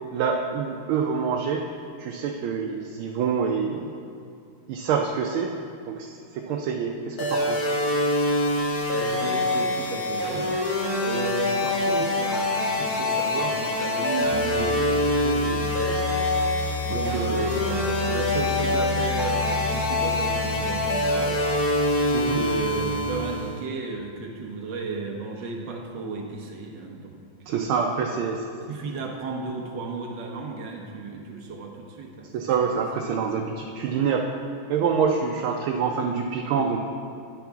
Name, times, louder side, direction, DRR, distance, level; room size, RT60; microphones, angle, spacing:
voice 1, 0.1-1.7 2.0-4.0 4.7-5.5 5.9-7.6 16.9-17.4 22.1-22.5 27.5-28.4 32.3-34.2 34.7-36.8, right 6 dB, 90° right, 1 dB, 1.4 m, -26 dB
sound 1, 7.2-23.6, left 1 dB, 55° left, 1.4 m, -25 dB
voice 2, 8.9-10.6 11.0-16.1 16.8-21.4 22.0-27.7 28.7-32.7 33.3-33.4, right 3 dB, 65° right, 1 dB, 1.5 m, -34 dB
sound 2, 14.2-23.2, left 2 dB, 15° left, 0.4 m, -33 dB
10.0 x 6.1 x 3.5 m, 2.4 s
omnidirectional pair, 2.2 m